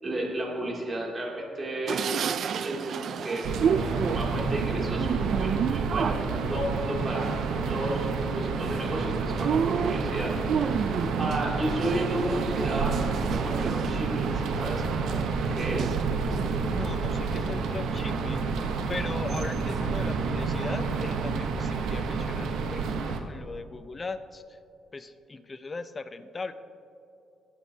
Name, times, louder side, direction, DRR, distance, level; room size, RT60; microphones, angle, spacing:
voice 1, 0.0-2.1 2.6-7.3 7.7-12.9 13.3-16.0, right 1 dB, 30° right, -3 dB, 2.6 m, -33 dB
sound 1, 1.9-16.6 17.1-18.0 18.6-18.7 19.0-19.8, right 7 dB, 60° right, 0.4 m, -32 dB
sound 2, 3.4-23.2, right 4 dB, 80° right, 0.9 m, -29 dB
voice 2, 16.6-24.6 24.9-26.5, left 3 dB, 30° left, 10 dB, 0.6 m, -38 dB
21.0 x 8.0 x 2.8 m, 2.7 s
cardioid pair, 90°, 0 cm